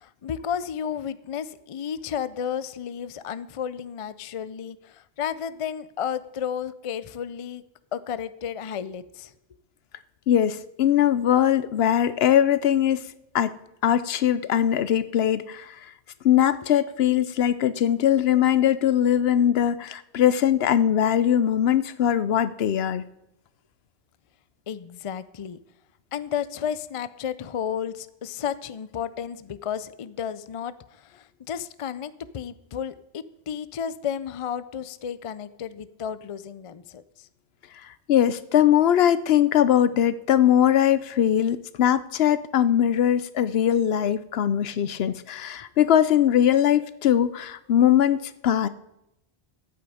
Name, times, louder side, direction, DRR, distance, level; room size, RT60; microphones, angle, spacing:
voice 1, 0.0-7.6 7.9-9.3 24.7-25.6 26.1-37.3, left 8 dB, 45° left, 15 dB, 0.4 m, -32 dB
voice 2, 10.3-13.0 13.3-13.5 13.8-15.8 16.2-23.0 38.1-48.7, left 10 dB, 70° left, 15 dB, 0.8 m, -21 dB
13.5 x 8.7 x 4.9 m, 0.87 s
omnidirectional pair, 1.1 m